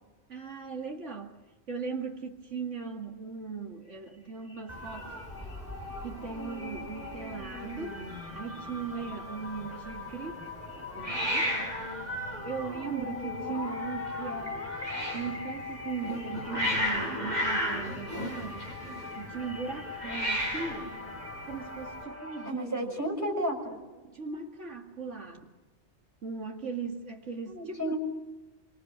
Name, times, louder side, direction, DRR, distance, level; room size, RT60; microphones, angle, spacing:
voice 1, 0.3-1.4 1.7-5.1 6.0-8.0 8.3-10.4 10.9-11.5 12.4-14.6 15.1-18.7 19.2-21.0 21.4-23.0 23.9-25.5 26.2-27.9, right 5 dB, 90° right, 2 dB, 2.7 m, -38 dB
sound 1, 3.9-4.1 4.4-22.5, left 4 dB, 10° left, 4.4 m, -42 dB
Hiss, 4.7-22.0, equal, 35° right, 8.4 m, -36 dB
voice 2, 22.4-23.8 27.5-28.0, right 1 dB, 15° right, 0 dB, 6.6 m, -32 dB
26.0 x 25.0 x 7.6 m, 1.2 s
omnidirectional pair, 1.2 m